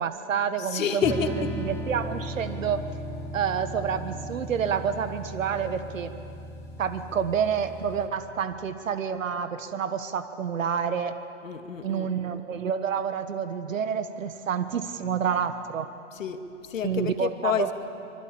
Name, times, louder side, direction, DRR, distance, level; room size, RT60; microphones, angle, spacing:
voice 1, 0.0-1.3 1.6-2.8 3.3-6.1 6.8-11.1 11.8-15.9 16.8-17.7, right 7 dB, 80° right, 9 dB, 1.5 m, -28 dB
voice 2, 0.6-1.6 11.4-12.2 16.1-17.7, left 7 dB, 80° left, 7 dB, 2.3 m, -29 dB
sound 1, 1.0-8.1, equal, 5° left, 0.9 m, -37 dB
26.0 x 23.5 x 8.7 m, 2.7 s
hypercardioid pair, 170°, 39 cm